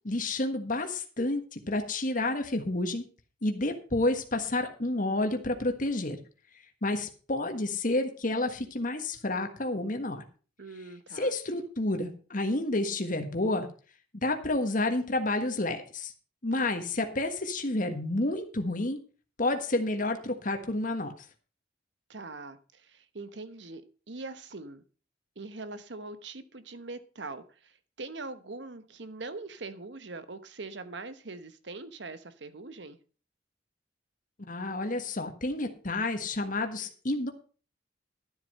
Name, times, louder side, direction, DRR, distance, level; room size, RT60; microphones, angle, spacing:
voice 1, 0.0-3.0 3.4-6.2 6.8-10.2 11.1-13.7 14.1-16.1 16.4-19.0 19.4-21.1 34.5-37.3, left 2 dB, 45° left, 5 dB, 1.5 m, -30 dB
voice 2, 10.6-11.3 16.5-16.8 22.1-24.8 25.4-33.0, right 3 dB, 70° right, 12 dB, 1.1 m, -42 dB
12.5 x 7.9 x 5.5 m, 0.38 s
head